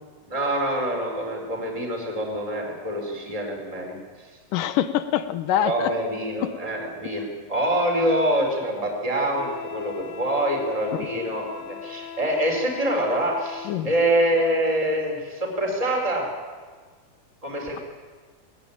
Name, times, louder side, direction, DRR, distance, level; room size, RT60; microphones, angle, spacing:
voice 1, 0.3-4.0 5.7-16.3 17.4-17.8, right 1 dB, 10° right, 1 dB, 4.3 m, -25 dB
voice 2, 4.5-5.9 6.4-6.5 10.9-11.1 13.7-13.9, left 11 dB, 70° left, 11 dB, 2.2 m, -24 dB
Wind instrument woodwind instrument, 9.3-13.8, left 8 dB, 90° left, 3.4 m, -39 dB
20.5 x 19.5 x 8.8 m, 1.5 s
omnidirectional pair, 4.5 m